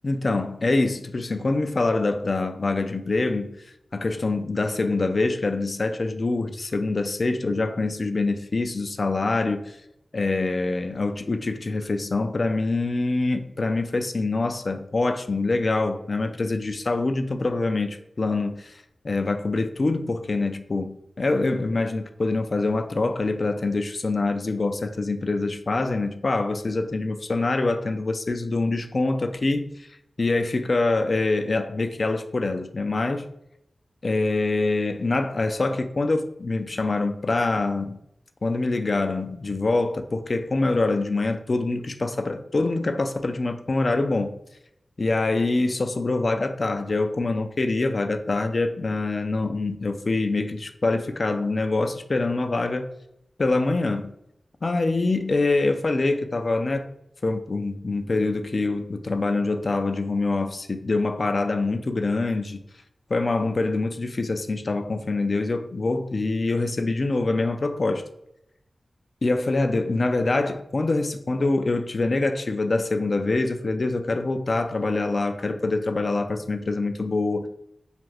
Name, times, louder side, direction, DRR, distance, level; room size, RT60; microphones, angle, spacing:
voice 1, 0.0-9.8 10.1-29.7 30.2-33.3 34.0-38.0 38.4-44.4 45.0-52.9 53.4-54.1 54.6-56.9 57.2-62.6 63.1-68.0 69.2-77.5, left 3 dB, 65° left, 0.3 m, -25 dB
2.5 x 2.4 x 3.2 m
cardioid pair, 40°, 0 cm